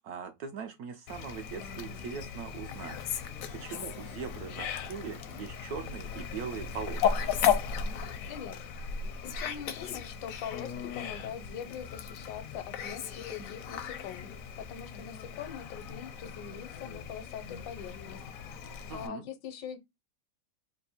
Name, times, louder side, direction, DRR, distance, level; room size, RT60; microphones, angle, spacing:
voice 1, 0.0-3.0 3.5-7.3 18.9-19.2, right 6 dB, 70° right, 0.9 m, -41 dB
Fowl, 1.1-19.1, left 7 dB, 70° left, 0.8 m, -36 dB
voice 2, 9.2-18.2 18.9-19.8, left 8 dB, 85° left, 1.4 m, -42 dB
3.3 x 2.6 x 4.2 m
omnidirectional pair, 2.0 m